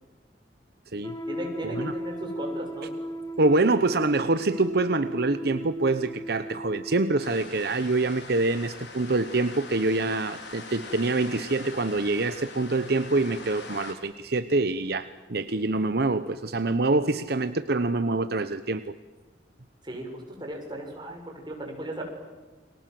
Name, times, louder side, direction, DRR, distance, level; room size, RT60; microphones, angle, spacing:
sound 1, 1.0-7.3, right 1 dB, 20° left, 1.9 m, -36 dB
voice 1, 1.3-2.9 19.8-22.0, right 1 dB, 25° right, 2 dB, 7.1 m, -36 dB
voice 2, 3.4-19.0, right 2 dB, 65° right, 11 dB, 1.0 m, -25 dB
sound 2, 7.2-13.9, left 3 dB, 90° left, 5.1 m, -43 dB
30.0 x 24.0 x 7.8 m, 1.3 s
head